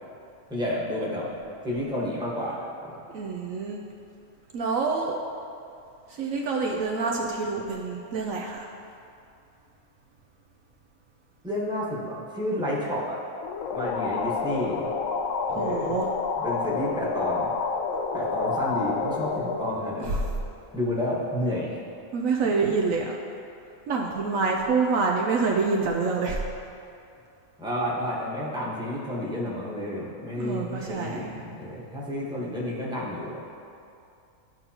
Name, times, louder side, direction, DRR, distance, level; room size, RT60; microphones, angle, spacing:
voice 1, 0.5-1.3 1.6-2.9 11.4-13.2 13.7-14.9 15.5-15.9 16.4-17.5 18.1-20.2 20.7-21.7 22.5-22.6 27.6-33.4, left 1 dB, 5° right, -6 dB, 1.1 m, -30 dB
voice 2, 3.1-3.8 4.5-5.2 6.1-8.7 15.5-16.1 20.0-20.1 22.1-23.2 23.9-26.4 30.3-31.3, right 4 dB, 70° right, 0 dB, 1.0 m, -27 dB
sound 1, 13.4-20.8, left 5 dB, 70° left, 0.9 m, -29 dB
12.5 x 5.4 x 2.9 m, 2.6 s
omnidirectional pair, 1.5 m